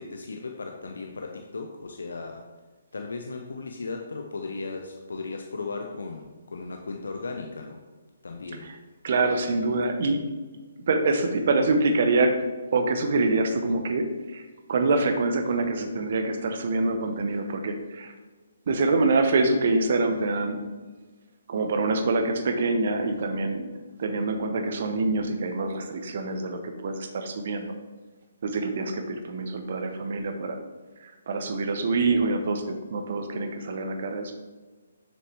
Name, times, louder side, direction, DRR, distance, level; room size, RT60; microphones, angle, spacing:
voice 1, 0.0-2.5 2.9-7.8 8.2-8.7, left 3 dB, 70° left, 3 dB, 0.7 m, -36 dB
voice 2, 9.0-10.2 10.9-12.4 12.7-18.1 18.7-20.6 21.5-23.7 24.0-27.7 28.4-30.6 31.0-34.3, right 3 dB, 50° right, 6 dB, 1.0 m, -25 dB
6.8 x 6.5 x 3.4 m, 1.3 s
figure-of-eight pair, 135°, 0 cm